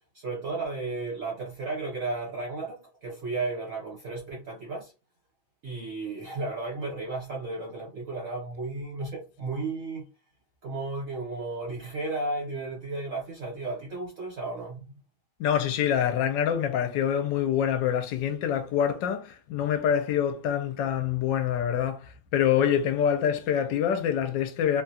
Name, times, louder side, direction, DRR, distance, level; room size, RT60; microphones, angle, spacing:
voice 1, 0.1-4.9 5.6-10.1 10.6-14.9, right 3 dB, 55° right, 0.9 m, -34 dB
voice 2, 15.4-24.8, left 9 dB, 75° left, 1.2 m, -26 dB
3.6 x 2.3 x 2.7 m
omnidirectional pair, 2.2 m